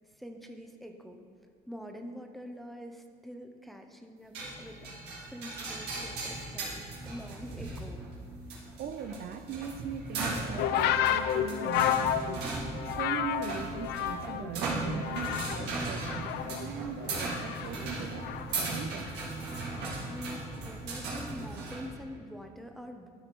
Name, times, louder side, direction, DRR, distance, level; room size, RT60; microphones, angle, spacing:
voice 1, 0.2-1.2 1.7-8.0 20.1-23.1, equal, ahead, 4 dB, 0.7 m, -45 dB
sound 1, 4.3-21.9, right 3 dB, 85° right, 1.9 m, -37 dB
voice 2, 8.8-18.3 18.6-19.1, right 6 dB, 65° right, 8 dB, 0.5 m, -40 dB
sound 2, 10.6-14.5 14.8-15.7 16.0-18.7 19.5-19.9, left 10 dB, 75° left, 0.4 m, -31 dB
12.0 x 4.4 x 4.5 m, 2.2 s
cardioid pair, 110°, 17 cm